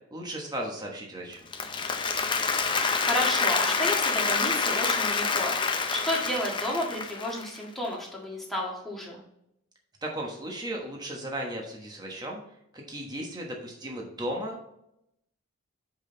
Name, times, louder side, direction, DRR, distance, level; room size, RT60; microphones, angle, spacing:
voice 1, 0.1-1.4 10.0-12.4 12.7-14.7, right 1 dB, 20° right, 0 dB, 1.2 m, -35 dB
Applause, 1.3-7.6, left 4 dB, 20° left, 0.6 m, -27 dB
voice 2, 2.8-9.2, equal, ahead, -4 dB, 1.7 m, -32 dB
6.3 x 5.3 x 3.8 m, 0.77 s
head